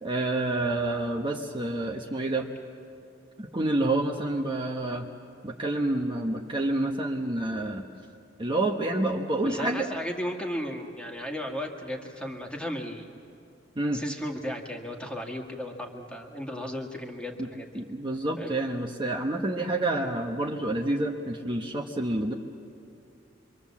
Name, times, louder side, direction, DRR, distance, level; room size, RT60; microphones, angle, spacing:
voice 1, 0.0-2.5 3.4-5.0 5.4-7.8 8.4-9.9 13.8-14.0 17.4-17.5 17.7-22.3, right 2 dB, 25° right, 0 dB, 1.2 m, -28 dB
voice 2, 9.4-13.1 13.9-17.8 18.4-18.6, equal, 5° left, 1 dB, 1.9 m, -35 dB
25.5 x 24.5 x 7.4 m, 2.6 s
head